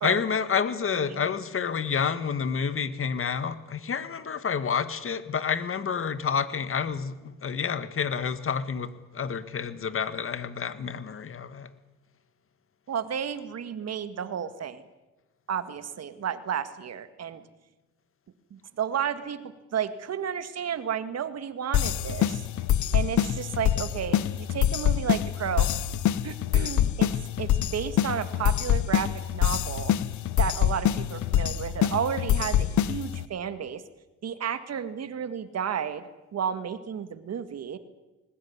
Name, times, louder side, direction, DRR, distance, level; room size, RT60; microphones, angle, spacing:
voice 1, 0.0-11.7, left 6 dB, 45° left, 13 dB, 1.7 m, -29 dB
voice 2, 0.9-1.2 12.9-14.8 15.5-17.4 18.5-22.5 22.9-25.7 26.2-27.1 27.4-29.9 30.4-33.8 34.2-37.8, right 8 dB, 55° right, 11 dB, 2.0 m, -32 dB
sound 1, 21.7-33.2, left 11 dB, 75° left, 1.0 m, -25 dB
20.5 x 19.5 x 9.6 m, 1.1 s
cardioid pair, 90°, 30 cm